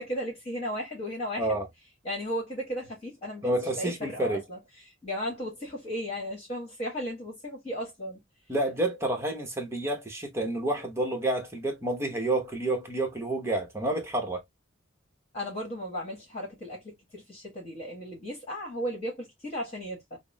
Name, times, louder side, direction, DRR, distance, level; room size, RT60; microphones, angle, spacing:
voice 1, 0.0-1.5 2.0-3.5 3.8-4.6 5.0-8.2 15.3-20.2, equal, 30° left, 1.4 m, -35 dB
voice 2, 3.4-4.4 8.5-14.4, right 1 dB, 15° right, 0.9 m, -29 dB
5.8 x 2.0 x 2.2 m
head